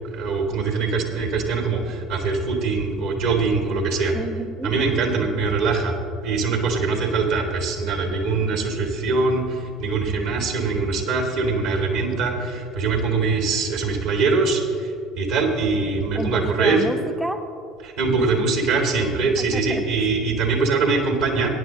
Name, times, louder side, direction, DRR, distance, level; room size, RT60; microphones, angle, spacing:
voice 1, 0.0-4.1 4.6-6.0 6.2-16.8 17.8-21.5, right 4 dB, 65° right, 2 dB, 1.9 m, -23 dB
voice 2, 4.1-4.7 16.1-17.4 18.2-18.3 19.4-20.1, right 1 dB, 10° right, 4 dB, 0.7 m, -30 dB
16.5 x 10.0 x 2.8 m, 2.5 s
figure-of-eight pair, 65°, 0 cm